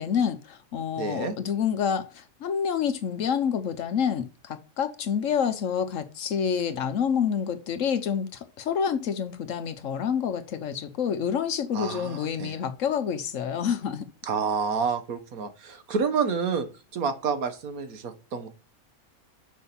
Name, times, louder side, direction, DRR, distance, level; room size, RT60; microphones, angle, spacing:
voice 1, 0.0-14.0, left 7 dB, 65° left, 1.1 m, -28 dB
voice 2, 1.0-1.4 11.7-12.6 14.2-16.7 16.9-18.5, right 5 dB, 80° right, 1.6 m, -29 dB
6.4 x 5.4 x 6.9 m
omnidirectional pair, 1.5 m